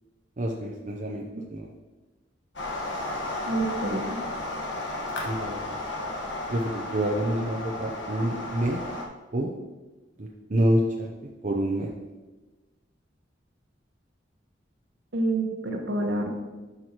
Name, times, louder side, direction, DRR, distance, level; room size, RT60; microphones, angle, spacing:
voice 1, 0.4-1.7 2.8-2.9 5.2-5.8 6.5-8.8 9.3-9.5 10.2-11.1 11.4-11.9, right 1 dB, 45° right, -1 dB, 0.7 m, -27 dB
sound 1, 2.6-9.1, left 2 dB, 80° left, 1.4 m, -33 dB
voice 2, 3.5-4.2 15.1-16.3, right 2 dB, 65° right, 2 dB, 1.3 m, -28 dB
10.5 x 6.3 x 3.0 m, 1.2 s
head